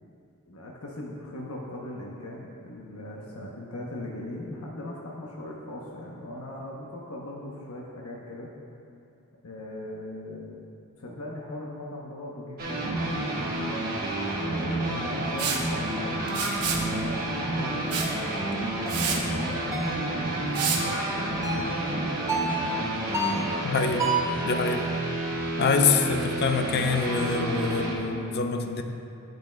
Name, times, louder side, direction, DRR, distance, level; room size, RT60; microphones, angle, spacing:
voice 1, 0.5-8.5 9.4-10.6 11.0-13.5 14.3-18.1 18.7-19.9 20.2-21.4, left 1 dB, 80° left, -3 dB, 0.8 m, -39 dB
sound 1, 12.6-28.0, right 1 dB, 40° right, 1.1 m, -30 dB
Liquid, 15.4-15.6 16.3-16.8 17.9-18.1 18.5-18.6 18.9-19.2 20.5-20.8, right 6 dB, 85° right, 0.9 m, -28 dB
sound 2, 18.0-18.2 18.8-19.1 19.7-20.0 20.6-20.8 21.4-21.7 22.3-22.6 23.1-23.5 24.0-24.3, right 2 dB, 15° right, 0.9 m, -29 dB
voice 2, 23.6-24.1 24.4-24.9 25.6-28.8, left 4 dB, 45° left, 5 dB, 0.5 m, -25 dB
10.5 x 7.9 x 2.2 m, 2.6 s
head